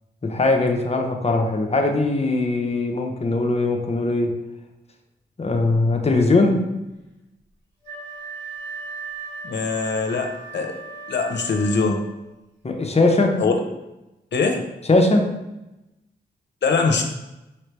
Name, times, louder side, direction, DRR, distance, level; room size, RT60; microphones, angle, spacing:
voice 1, 0.2-4.3 5.4-6.7 12.6-13.4 14.9-15.3, left 2 dB, 35° left, 3 dB, 0.8 m, -20 dB
Wind instrument woodwind instrument, 7.8-12.3, right 3 dB, 70° right, 1.6 m, -37 dB
voice 2, 9.4-10.7 11.1-12.0 13.4-13.5 14.3-14.7 16.6-17.0, left 4 dB, 70° left, 3 dB, 0.8 m, -22 dB
5.1 x 3.2 x 3.2 m, 0.96 s
cardioid pair, 55°, 19 cm